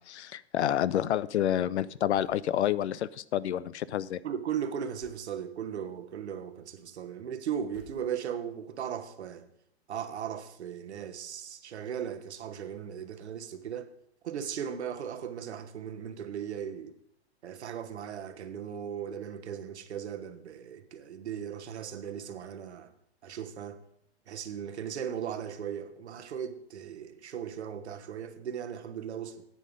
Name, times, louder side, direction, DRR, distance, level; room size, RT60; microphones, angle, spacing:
voice 1, 0.0-4.2, left 11 dB, 80° left, 0.6 m, -29 dB
sound 1, 2.1-2.5 5.0-5.3 7.7-8.5, left 4 dB, 40° left, 3.9 m, -59 dB
voice 2, 4.2-9.5 9.9-13.9 14.2-16.9 17.4-22.9 23.2-23.8 24.3-29.5, right 8 dB, 80° right, 1.3 m, -37 dB
10.0 x 7.9 x 5.2 m
hypercardioid pair, 140°, 33 cm